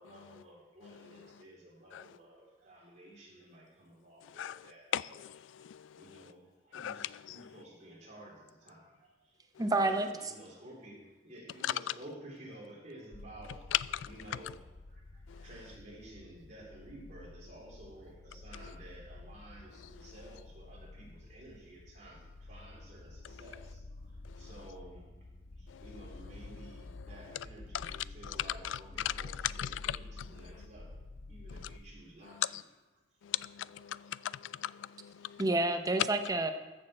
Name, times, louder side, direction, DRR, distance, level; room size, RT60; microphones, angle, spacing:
voice 1, 0.0-5.3 5.5-9.4 9.8-13.7 14.0-25.1 25.6-31.0 31.3-32.6 33.7-34.6, right 1 dB, 40° right, 3.4 m, -53 dB
voice 2, 4.9-5.4 5.6-5.8 6.7-7.0 25.7-25.8 27.8-27.9 29.6-30.0 32.5-32.6 33.2-35.4, left 11 dB, 90° left, 0.3 m, -39 dB
voice 3, 9.6-10.3 35.4-36.5, right 2 dB, 20° right, 0.7 m, -29 dB
sound 1, 13.1-31.8, left 2 dB, 70° left, 1.3 m, -50 dB
14.0 x 6.6 x 4.3 m
head